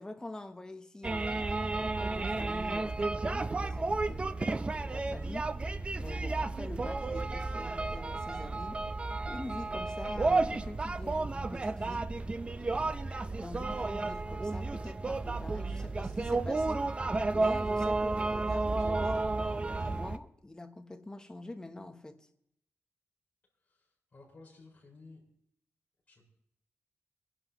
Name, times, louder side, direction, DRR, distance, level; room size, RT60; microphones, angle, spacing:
voice 1, 0.0-5.6 6.0-8.8 9.3-12.1 12.6-16.9 17.3-22.3, left 2 dB, 15° left, 0.9 m, -45 dB
sound 1, 1.0-20.2, right 3 dB, 25° right, 0.5 m, -32 dB
voice 2, 23.6-25.2 26.1-26.3, left 3 dB, 30° left, 4.9 m, -55 dB
25.0 x 11.0 x 3.0 m
wide cardioid pair, 175°, 5 cm